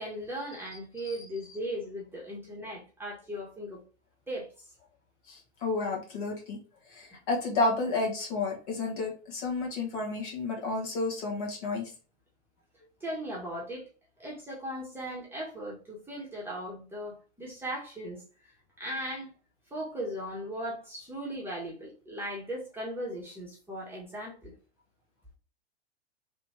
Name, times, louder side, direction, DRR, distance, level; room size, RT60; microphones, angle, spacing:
voice 1, 0.0-3.8 4.3-4.5 13.0-13.8 14.2-18.2 18.8-19.3 19.7-24.5, equal, 5° right, 1.1 m, -38 dB
voice 2, 5.3-6.6 6.9-11.9, left 3 dB, 50° left, 1.7 m, -31 dB
3.3 x 2.8 x 2.9 m
figure-of-eight pair, 95°, 34 cm